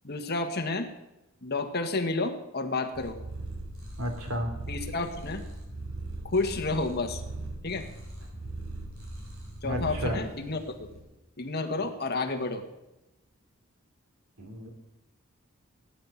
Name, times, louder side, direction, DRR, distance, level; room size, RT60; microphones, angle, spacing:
voice 1, 0.0-0.9 1.4-3.2 4.7-5.4 6.2-7.2 7.6-7.9 9.6-10.9 11.4-12.6, left 3 dB, 50° left, 5 dB, 1.8 m, -30 dB
Purr, 2.9-11.0, right 2 dB, 70° right, 6.2 m, -39 dB
voice 2, 4.0-4.5 9.6-10.2 14.4-14.7, equal, 85° right, 5 dB, 3.2 m, -32 dB
17.5 x 10.0 x 7.4 m, 0.96 s
head